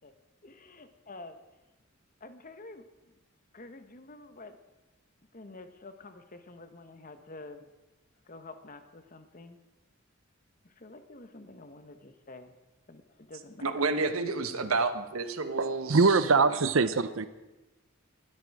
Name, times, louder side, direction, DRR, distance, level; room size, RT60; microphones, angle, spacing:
voice 1, 0.4-1.4 2.2-2.8 3.5-4.6 5.3-7.7 8.3-9.6 10.8-12.5 12.9-13.8 14.4-14.8, left 2 dB, 40° left, 9 dB, 1.3 m, -48 dB
voice 2, 13.6-16.2, right 3 dB, 85° right, 9 dB, 1.2 m, -30 dB
voice 3, 15.5-17.3, right 4 dB, 65° right, 13 dB, 0.7 m, -23 dB
21.0 x 12.5 x 4.8 m, 1.1 s
head